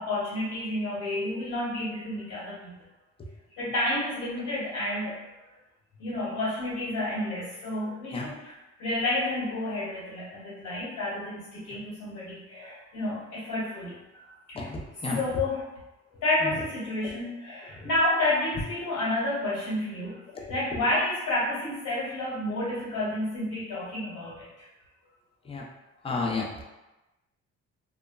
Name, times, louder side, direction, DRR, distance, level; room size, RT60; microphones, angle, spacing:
voice 1, 0.0-2.8 3.5-5.2 6.0-14.6 15.1-15.7 16.1-20.2 20.5-24.7, left 1 dB, 85° left, -9 dB, 1.1 m, -30 dB
voice 2, 14.5-15.2 16.5-16.6 17.8-17.9 20.3-20.4 25.5-25.6 26.0-26.6, left 3 dB, 20° left, -1 dB, 0.5 m, -32 dB
2.9 x 2.1 x 2.2 m, 1.0 s
cardioid pair, 90°, 30 cm